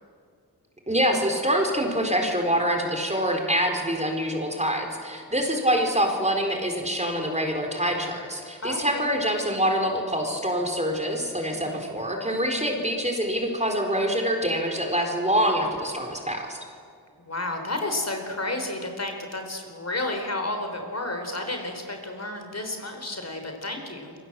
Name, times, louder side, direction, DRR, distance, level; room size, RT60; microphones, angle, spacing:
voice 1, 0.9-16.6, equal, 15° right, 2 dB, 4.4 m, -25 dB
voice 2, 8.6-9.1 11.5-11.8 17.2-24.1, left 2 dB, 40° left, 4 dB, 4.2 m, -31 dB
28.0 x 24.0 x 7.8 m, 2.2 s
wide cardioid pair, 105°, 40 cm